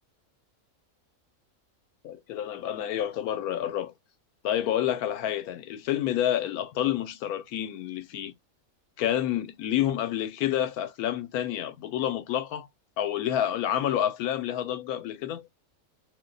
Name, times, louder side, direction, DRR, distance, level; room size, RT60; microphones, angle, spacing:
voice 1, 2.0-3.9 4.4-8.3 9.0-12.7 13.0-15.5, left 11 dB, 85° left, 1.1 m, -29 dB
2.7 x 2.2 x 3.8 m
omnidirectional pair, 1.6 m